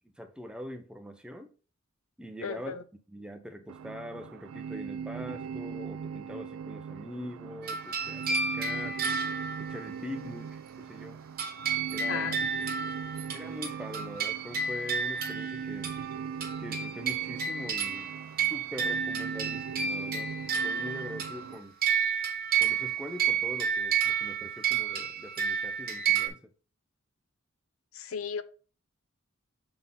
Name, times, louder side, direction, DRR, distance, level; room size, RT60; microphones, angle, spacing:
voice 1, 0.2-1.5 2.2-2.7 3.1-9.0 9.6-11.2 11.9-12.4 13.3-15.9 16.6-18.1 18.4-20.3 20.6-21.8 22.6-26.4, equal, 5° right, 0.7 m, -43 dB
voice 2, 2.4-2.8 12.1-12.4 27.9-28.4, left 6 dB, 75° left, 0.6 m, -35 dB
sound 1, 3.7-21.6, right 6 dB, 70° right, 0.3 m, -40 dB
sound 2, 7.6-10.1 11.4-26.3, right 6 dB, 45° right, 1.2 m, -31 dB
6.9 x 3.8 x 3.8 m
head